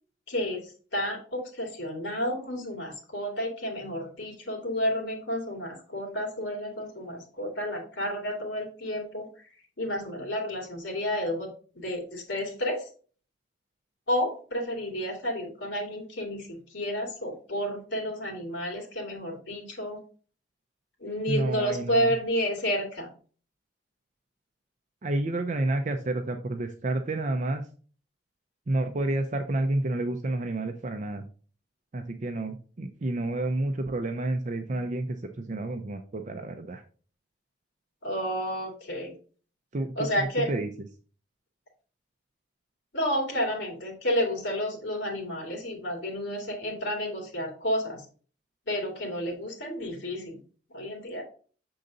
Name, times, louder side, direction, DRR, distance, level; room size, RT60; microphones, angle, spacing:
voice 1, 0.3-9.3 9.8-11.5 11.7-12.9 14.1-20.0 21.0-23.1 38.0-39.2 40.0-40.5 42.9-48.1 48.7-50.4 50.7-51.2, equal, 80° left, 2 dB, 2.3 m, -31 dB
voice 2, 21.3-22.1 25.0-27.6 28.7-31.2 31.9-36.8 39.7-40.1 40.5-40.7, right 2 dB, 40° right, 6 dB, 0.5 m, -30 dB
6.6 x 3.8 x 3.8 m, 0.41 s
head